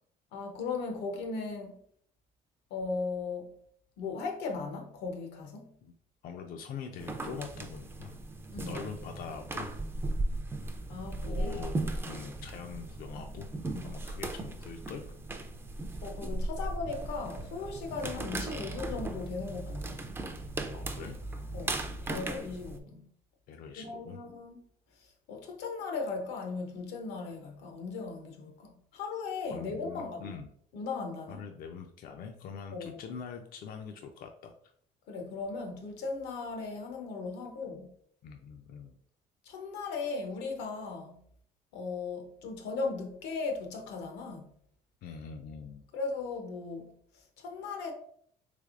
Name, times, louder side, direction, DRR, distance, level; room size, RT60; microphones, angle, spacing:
voice 1, 0.3-1.7 2.7-3.5 4.0-5.7 8.5-8.8 10.9-11.6 16.0-20.1 21.5-23.0 23.8-24.6 25.3-30.3 30.7-31.4 32.7-33.0 35.1-37.9 39.5-41.2 41.7-44.5 45.9-46.9 47.4-47.9, left 4 dB, 85° left, 0.7 m, -37 dB
voice 2, 6.2-8.2 8.7-9.7 11.0-11.8 12.1-13.5 13.8-15.1 20.7-21.2 21.6-22.1 23.5-24.2 28.4-28.5 29.5-30.5 31.3-34.5 38.2-38.9 45.0-45.8, left 6 dB, 60° left, 0.4 m, -43 dB
sound 1, 7.0-22.8, right 2 dB, 15° right, 0.4 m, -37 dB
3.3 x 3.3 x 2.4 m
cardioid pair, 110°, 17 cm